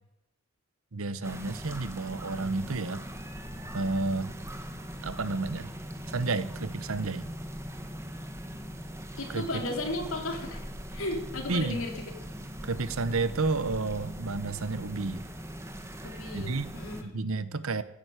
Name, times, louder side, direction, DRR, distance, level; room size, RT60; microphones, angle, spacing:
voice 1, 0.9-3.0 3.7-4.3 5.0-5.7 6.1-7.3 9.3-9.4 11.5-11.8 12.6-15.2 16.3-16.7 17.0-17.8, right 3 dB, 70° right, 15 dB, 1.0 m, -31 dB
sound 1, 1.2-17.0, equal, 15° right, 1.6 m, -40 dB
voice 2, 9.2-10.6 10.9-12.1 16.0-17.2, left 2 dB, 65° left, 2 dB, 3.8 m, -35 dB
16.0 x 9.8 x 8.2 m, 0.89 s
head